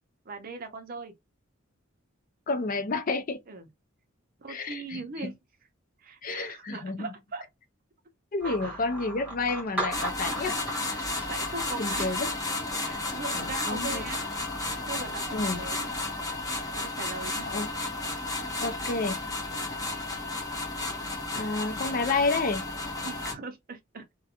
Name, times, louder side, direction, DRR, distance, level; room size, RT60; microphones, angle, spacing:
voice 1, 0.3-1.1 3.5-3.7 4.4-5.3 6.0-7.4 8.4-8.9 9.9-10.5 10.9-12.1 12.8-14.2 14.9-15.9 16.7-17.5 23.0-24.1, right 4 dB, 45° right, 0.6 m, -40 dB
voice 2, 2.5-3.4 4.5-5.3 6.2-7.1 8.3-10.6 11.8-12.3 13.3-14.0 15.3-15.7 17.5-17.7 18.6-19.2 21.3-22.7, left 3 dB, 45° left, 0.5 m, -30 dB
sound 1, 8.4-16.3, right 1 dB, 5° right, 1.3 m, -40 dB
sound 2, 9.9-23.3, left 2 dB, 20° left, 0.8 m, -33 dB
2.5 x 2.2 x 2.7 m
head